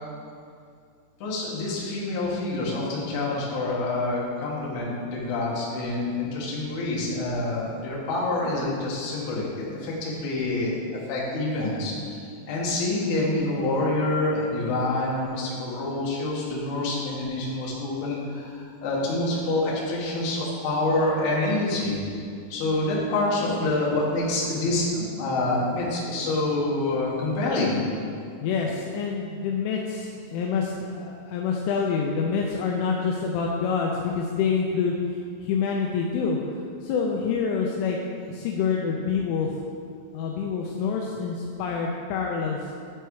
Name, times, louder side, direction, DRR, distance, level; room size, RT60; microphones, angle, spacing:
voice 1, 1.2-10.8 11.1-12.2 12.5-22.0 22.5-27.8, left 2 dB, 65° left, -5 dB, 3.1 m, -27 dB
voice 2, 28.4-38.0 38.3-39.6 40.1-42.7, left 5 dB, 85° left, 0 dB, 3.0 m, -27 dB
11.0 x 4.5 x 4.7 m, 2.3 s
omnidirectional pair, 5.6 m